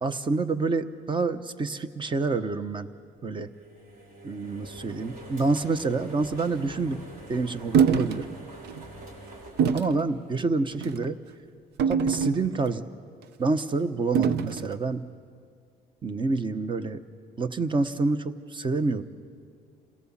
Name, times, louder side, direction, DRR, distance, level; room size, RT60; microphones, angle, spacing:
voice 1, 0.0-2.9 3.2-3.5 4.2-7.0 7.3-8.3 9.7-11.2 11.9-12.9 13.4-15.1 16.0-17.0 17.4-19.0, right 3 dB, 30° right, 11 dB, 1.0 m, -27 dB
sound 1, 3.4-10.7, right 2 dB, 60° right, 5.4 m, -45 dB
sound 2, 7.7-8.2 8.6-8.8 9.6-10.0 10.7-11.0 11.8-12.7 14.1-14.7, right 7 dB, 75° right, 0.8 m, -24 dB
28.0 x 17.0 x 7.4 m, 2.2 s
cardioid pair, 110°, 17 cm